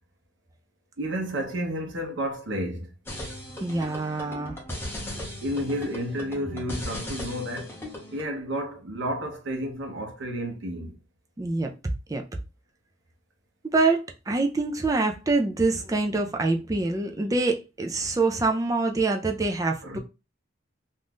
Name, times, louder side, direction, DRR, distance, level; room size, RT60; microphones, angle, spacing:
voice 1, 1.0-2.9 5.4-7.8 8.1-10.9 19.8-20.0, equal, 70° right, 0.8 m, -31 dB
sound 1, 3.1-8.2, left 1 dB, 10° left, 0.7 m, -37 dB
voice 2, 3.6-4.6 11.4-11.7 12.1-12.2 13.6-20.0, right 3 dB, 15° right, 0.4 m, -25 dB
2.6 x 2.3 x 3.4 m
head